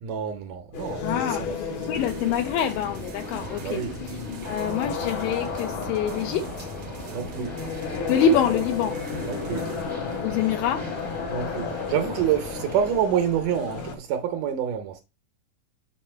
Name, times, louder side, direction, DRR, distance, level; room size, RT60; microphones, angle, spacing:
voice 1, 0.0-1.8 3.6-4.0 7.1-7.6 9.2-9.7 11.3-15.0, right 9 dB, 75° right, 2.1 m, -27 dB
sound 1, 0.7-13.9, left 5 dB, 65° left, 1.3 m, -33 dB
voice 2, 1.0-1.5 1.9-4.2 4.4-6.7 8.1-9.0 10.2-10.9, left 7 dB, 80° left, 2.3 m, -26 dB
sound 2, 1.8-9.8, right 10 dB, 90° right, 1.6 m, -46 dB
sound 3, 1.9-13.1, right 1 dB, 45° right, 0.9 m, -41 dB
6.0 x 5.4 x 4.4 m
omnidirectional pair, 4.0 m